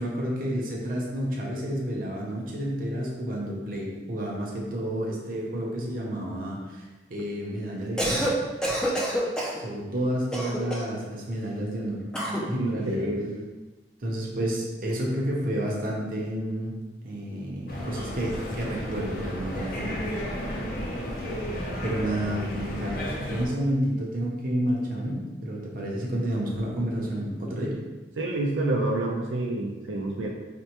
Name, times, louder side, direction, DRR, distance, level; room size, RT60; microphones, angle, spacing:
voice 1, 0.0-6.8 7.1-8.3 9.6-12.0 12.5-13.1 14.0-16.7 17.0-20.1 21.4-27.8, equal, 50° right, -3 dB, 0.6 m, -30 dB
Cough, 7.8-8.4 8.6-9.6 10.3-11.0 12.1-12.5, equal, 5° left, 0.4 m, -27 dB
voice 2, 12.6-13.4 28.2-30.3, right 2 dB, 90° right, -1 dB, 0.5 m, -28 dB
sound 1, 17.7-23.5, equal, 50° left, 0.6 m, -33 dB
4.3 x 2.1 x 2.9 m, 1.2 s
head